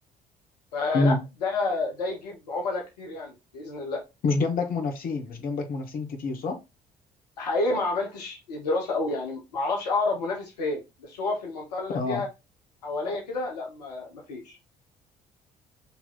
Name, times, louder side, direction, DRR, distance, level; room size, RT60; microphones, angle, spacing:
voice 1, 0.7-4.0 7.4-12.3 12.8-14.6, left 3 dB, 75° left, 0.8 m, -29 dB
voice 2, 4.2-6.6 11.9-12.2, left 3 dB, 45° left, 1.0 m, -26 dB
4.1 x 2.9 x 3.7 m
figure-of-eight pair, 50°, 21 cm